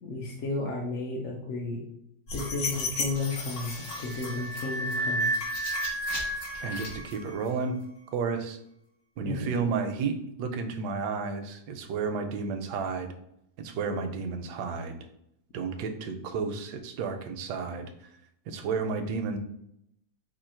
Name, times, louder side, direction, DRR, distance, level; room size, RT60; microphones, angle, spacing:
voice 1, 0.0-1.8 2.3-5.3 9.2-9.5, left 3 dB, 60° left, -3 dB, 1.0 m, -33 dB
sound 1, 2.3-7.5, equal, 80° left, 2.0 m, -32 dB
voice 2, 6.6-7.8 8.1-8.6 9.2-13.1 13.6-15.0 15.5-17.9 18.5-19.4, right 5 dB, 80° right, 7 dB, 1.1 m, -32 dB
4.4 x 2.7 x 4.3 m, 0.76 s
omnidirectional pair, 1.9 m